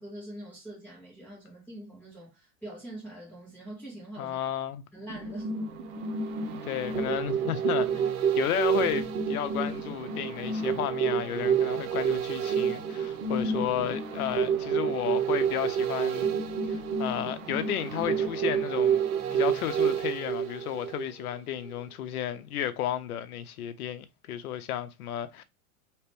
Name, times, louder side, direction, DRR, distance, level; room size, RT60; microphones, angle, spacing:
voice 1, 0.0-4.4 4.9-5.6 13.4-13.7, right 1 dB, 5° left, 1.5 m, -43 dB
voice 2, 4.2-4.8 6.7-16.3 16.7-19.0 19.3-25.4, left 11 dB, 80° left, 0.7 m, -33 dB
sound 1, 5.1-21.3 21.7-21.8, right 7 dB, 75° right, 0.9 m, -29 dB
3.0 x 2.9 x 3.3 m
supercardioid pair, 135°, 44 cm